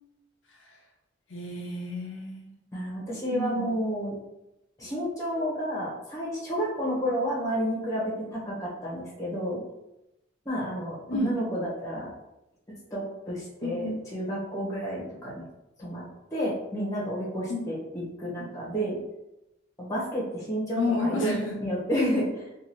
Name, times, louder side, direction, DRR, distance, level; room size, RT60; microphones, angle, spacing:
voice 1, 1.3-2.5 3.3-3.7 11.1-11.3 13.6-14.0 17.5-17.6 20.7-21.5, left 2 dB, 70° left, -1 dB, 0.6 m, -30 dB
voice 2, 2.7-4.2 4.8-9.6 10.4-12.1 12.9-15.4 15.8-16.0 16.3-19.0 19.8-22.6, equal, 15° left, -5 dB, 1.3 m, -31 dB
3.7 x 2.6 x 3.0 m, 0.91 s
head